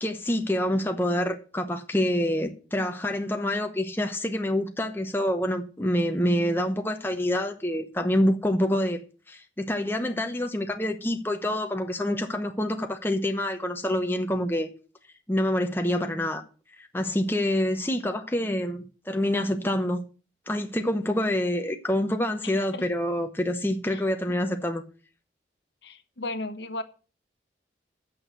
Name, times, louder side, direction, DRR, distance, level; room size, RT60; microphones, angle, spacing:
voice 1, 0.0-9.0 9.3-14.7 15.3-16.4 16.9-20.0 20.5-24.8, left 1 dB, 10° left, 0.9 m, -26 dB
voice 2, 22.4-22.9 23.9-24.0 25.8-26.8, left 2 dB, 70° left, 1.2 m, -35 dB
8.7 x 6.4 x 7.8 m
head